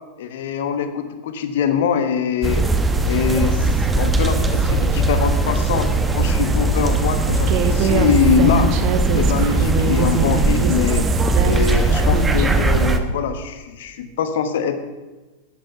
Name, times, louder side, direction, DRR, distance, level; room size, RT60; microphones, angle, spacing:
voice 1, 0.2-2.7 3.1-8.7 9.1-11.1 11.4-14.8, left 7 dB, 55° left, 9 dB, 1.2 m, -23 dB
sound 1, 2.4-13.0, right 2 dB, 10° right, 1.0 m, -19 dB
Human voice, 7.5-12.7, right 5 dB, 45° right, 1.0 m, -24 dB
11.5 x 8.9 x 5.7 m, 1.2 s
figure-of-eight pair, 90°, 0 cm